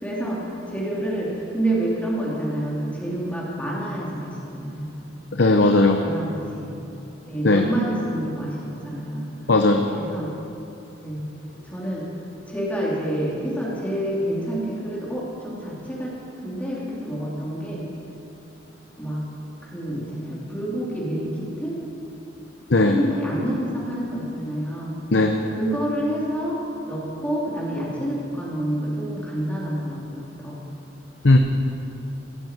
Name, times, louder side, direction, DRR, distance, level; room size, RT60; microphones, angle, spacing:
voice 1, 0.0-5.1 6.0-6.7 7.3-9.3 9.9-10.3 11.0-11.2 11.6-12.0 12.5-16.2 16.4-17.8 19.0-19.2 19.6-21.8 22.8-24.9 25.5-26.6 26.9-30.6, right 1 dB, 10° left, -6 dB, 2.9 m, -28 dB
voice 2, 5.3-6.1 7.4-7.7 9.5-9.9 22.7-23.0 25.1-25.4 31.2-31.4, left 2 dB, 65° left, 3 dB, 0.8 m, -17 dB
16.5 x 9.0 x 7.4 m, 2.9 s
head